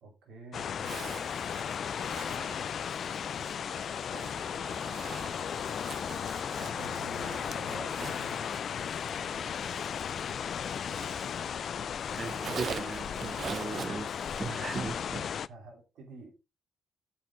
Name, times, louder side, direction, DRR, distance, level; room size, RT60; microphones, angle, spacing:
voice 1, 0.0-1.2 6.6-8.5 9.1-9.9 14.5-14.8 15.0-16.3, right 3 dB, 80° right, 3.1 m, -49 dB
sound 1, 0.5-15.5, left 8 dB, 65° left, 0.3 m, -35 dB
Zipper (clothing), 0.8-11.7 12.0-14.9, right 6 dB, 60° right, 0.5 m, -45 dB
voice 2, 12.1-14.1 14.4-15.2, right 4 dB, 40° right, 1.0 m, -37 dB
7.8 x 6.3 x 3.7 m
supercardioid pair, 60°, 0 cm